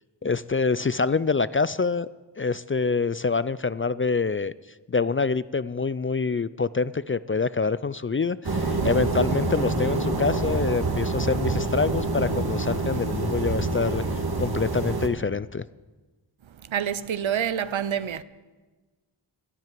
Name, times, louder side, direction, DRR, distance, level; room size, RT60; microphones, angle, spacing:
voice 1, 0.2-2.1 2.4-4.5 4.9-14.0 14.4-15.6, left 4 dB, 25° left, 0.4 m, -26 dB
sound 1, 8.4-15.1, right 3 dB, 50° right, 2.1 m, -26 dB
voice 2, 16.7-18.2, right 9 dB, 70° right, 0.8 m, -27 dB
13.5 x 10.5 x 9.2 m
cardioid pair, 40°, 49 cm